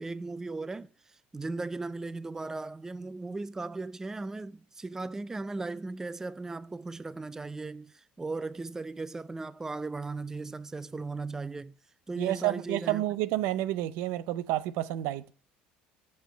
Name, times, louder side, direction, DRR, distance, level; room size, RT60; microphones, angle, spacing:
voice 1, 0.0-11.7 12.1-13.0, right 3 dB, 15° right, 0.4 m, -37 dB
voice 2, 12.2-15.3, right 15 dB, 75° right, 0.6 m, -30 dB
6.5 x 6.0 x 5.6 m
supercardioid pair, 100°, 4 cm